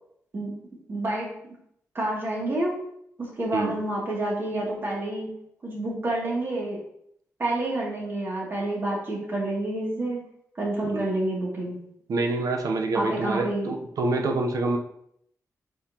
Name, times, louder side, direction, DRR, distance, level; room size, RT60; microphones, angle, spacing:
voice 1, 0.9-1.3 1.9-2.8 3.2-5.3 5.6-6.8 7.4-10.2 10.6-11.8 12.9-13.7, right 1 dB, 40° right, -4 dB, 2.7 m, -28 dB
voice 2, 12.1-14.8, right 3 dB, 80° right, 4 dB, 0.9 m, -26 dB
8.6 x 5.7 x 3.0 m, 0.72 s
wide cardioid pair, 165°, 6 cm